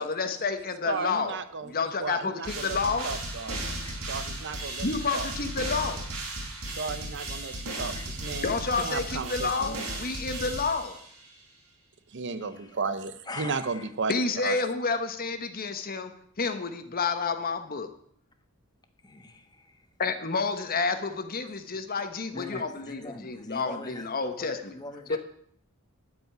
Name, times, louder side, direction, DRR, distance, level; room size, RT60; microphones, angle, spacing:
voice 1, 0.0-1.4 1.6-3.1 4.8-6.0 8.4-11.0 14.1-16.1 16.4-17.9 20.0-24.6 25.1-25.2, left 4 dB, 40° left, 8 dB, 1.2 m, -29 dB
voice 2, 0.8-1.7 2.0-2.8 3.0-3.6 4.0-4.9 5.1-5.3 6.7-9.9 12.1-14.1 14.4-14.6, right 4 dB, 55° right, 12 dB, 0.8 m, -34 dB
sound 1, 2.4-11.3, right 1 dB, 70° right, 4.9 m, -35 dB
voice 3, 3.8-4.2 7.9-8.1 12.4-12.8 13.2-13.9 19.0-19.9 21.4-21.5 22.3-25.2, left 2 dB, 20° left, 7 dB, 1.2 m, -43 dB
13.0 x 5.4 x 9.1 m, 0.66 s
head